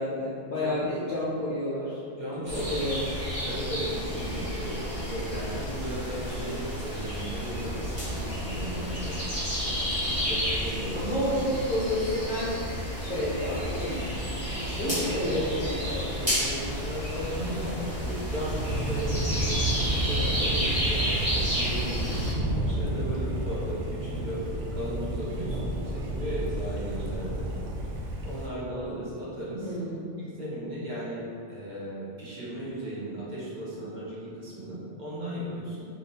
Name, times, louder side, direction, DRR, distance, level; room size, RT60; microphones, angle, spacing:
voice 1, 0.0-2.0 2.7-3.0 10.9-12.5 13.0-14.0 14.5-16.1 29.6-30.0, left 1 dB, 50° left, -9 dB, 0.7 m, -30 dB
voice 2, 0.6-0.9 2.1-2.7 3.4-9.2 10.0-11.0 14.8-15.5 16.2-24.4 24.7-27.5 27.9-29.7 30.2-31.2 31.5-35.8, right 1 dB, 40° right, -9 dB, 1.1 m, -36 dB
sound 1, 2.5-22.3, equal, 15° right, 1.2 m, -31 dB
Thunder, 18.4-28.5, right 1 dB, 80° right, 0.9 m, -31 dB
4.3 x 3.2 x 2.7 m, 2.5 s
omnidirectional pair, 1.2 m